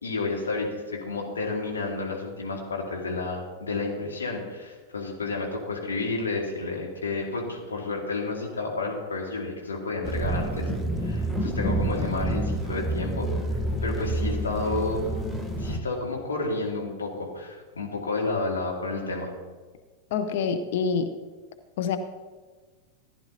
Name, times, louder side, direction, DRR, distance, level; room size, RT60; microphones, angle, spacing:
voice 1, 0.0-10.7 11.0-15.1 15.6-19.3, left 3 dB, 70° left, -1 dB, 2.3 m, -31 dB
sound 1, 10.0-15.8, right 1 dB, ahead, 1.2 m, -28 dB
voice 2, 20.1-21.1 21.8-22.0, left 6 dB, 55° left, 8 dB, 0.7 m, -26 dB
15.5 x 10.5 x 2.8 m, 1.4 s
figure-of-eight pair, 90°, 0 cm